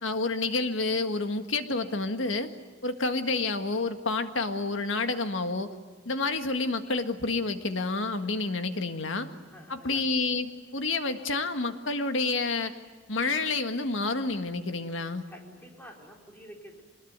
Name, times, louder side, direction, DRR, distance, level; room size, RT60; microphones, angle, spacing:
voice 1, 0.0-2.5 2.8-5.7 6.0-9.3 9.7-12.7 13.1-15.2, left 3 dB, 80° left, 7 dB, 1.8 m, -29 dB
voice 2, 9.4-10.1 15.3-16.8, equal, 10° left, 0 dB, 4.4 m, -49 dB
24.5 x 21.0 x 9.5 m, 1.4 s
head